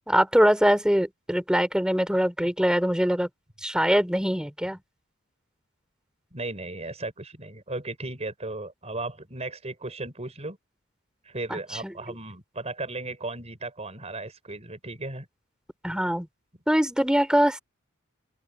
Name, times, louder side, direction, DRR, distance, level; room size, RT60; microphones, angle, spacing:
voice 1, 0.1-3.3 3.6-4.8 11.5-11.9 15.8-16.3 16.7-17.6, equal, 5° right, 3.8 m, -23 dB
voice 2, 6.3-10.6 11.3-15.3, right 2 dB, 30° right, 5.5 m, -36 dB
open air
head